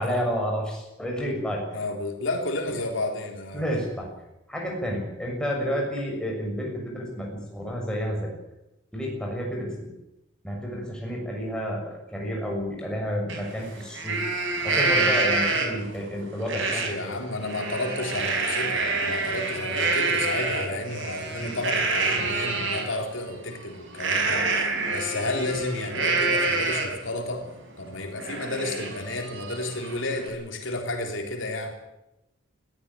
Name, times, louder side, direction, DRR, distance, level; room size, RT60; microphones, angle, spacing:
voice 1, 0.0-1.8 3.5-4.1 4.5-8.3 8.9-9.9 10.4-14.2 14.6-17.2 21.4-21.6, equal, 5° left, -1 dB, 6.7 m, -30 dB
voice 2, 1.7-3.6 16.5-24.5 24.9-27.4 27.8-31.7, left 2 dB, 70° left, 3 dB, 3.6 m, -31 dB
Livestock farm animals working animals, 13.3-13.4 13.8-15.9 16.5-16.9 17.3-22.9 24.0-27.1 27.5-27.6 27.9-30.3, right 3 dB, 65° right, 5.1 m, -27 dB
21.0 x 15.0 x 9.7 m, 0.91 s
head